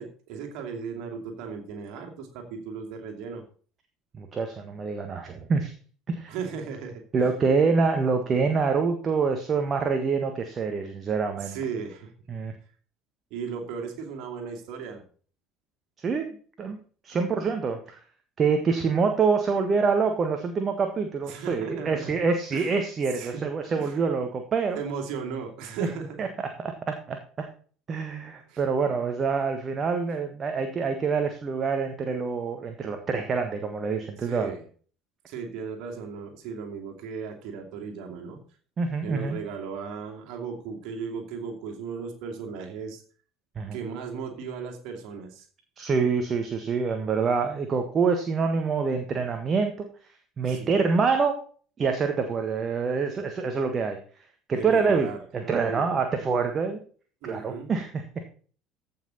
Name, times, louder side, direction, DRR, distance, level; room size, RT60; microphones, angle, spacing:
voice 1, 0.0-3.4 6.3-7.3 11.4-12.1 13.3-15.0 21.2-22.1 22.5-22.7 23.1-24.0 24.7-26.3 28.5-28.6 30.6-30.8 34.2-34.6 35.3-38.4 39.0-43.0 43.7-45.5 50.5-50.7 54.5-55.2 55.4-55.9 57.2-57.7, right 6 dB, 55° right, 3 dB, 2.7 m, -36 dB
voice 2, 4.2-5.7 6.1-6.3 7.1-11.6 12.3-12.5 16.0-16.3 16.6-16.8 17.0-18.0 18.4-24.8 26.2-27.5 27.9-34.5 38.8-39.4 43.5-43.8 45.8-49.9 50.4-51.4 51.8-54.0 54.5-55.1 55.3-56.8 57.2-58.0, right 5 dB, 35° right, 6 dB, 1.5 m, -26 dB
15.0 x 5.9 x 4.2 m, 0.42 s
figure-of-eight pair, 65°, 0 cm